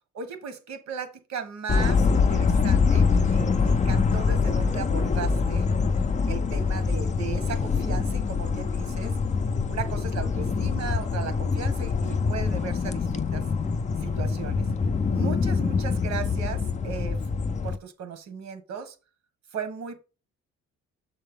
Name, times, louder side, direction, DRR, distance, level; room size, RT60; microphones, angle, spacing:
voice 1, 0.1-5.7 6.3-9.1 9.7-13.5 14.0-14.7 15.1-17.2 17.6-18.9 19.5-20.0, right 6 dB, 65° right, 1.3 m, -36 dB
sound 1, 1.7-17.8, left 5 dB, 25° left, 0.5 m, -24 dB
6.5 x 4.3 x 3.7 m
cardioid pair, 90°, 30 cm